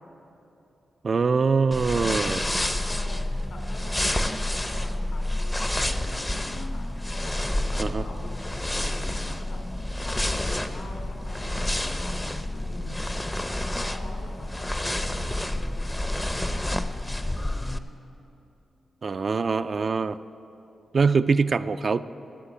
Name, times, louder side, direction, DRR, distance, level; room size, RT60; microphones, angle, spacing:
voice 1, 1.0-2.4 7.8-8.0 19.0-20.2 20.9-22.0, right 4 dB, 50° right, 12 dB, 0.4 m, -23 dB
sound 1, 1.7-17.8, left 1 dB, 15° left, 0.6 m, -29 dB
voice 2, 1.9-9.6 10.0-13.2 13.7-16.8, left 1 dB, 70° left, 0 dB, 3.8 m, -43 dB
13.0 x 7.9 x 8.8 m, 2.9 s
cardioid pair, 70°, 0 cm